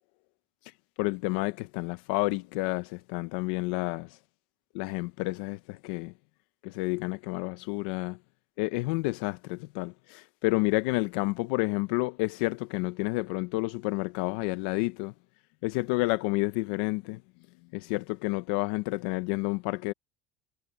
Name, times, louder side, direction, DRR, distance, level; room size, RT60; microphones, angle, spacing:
voice 1, 1.0-4.2 4.7-6.1 6.6-8.2 8.6-15.1 15.6-17.2 17.7-19.9, left 22 dB, 75° left, 0.6 m, -30 dB
cardioid pair, 160°, 5 cm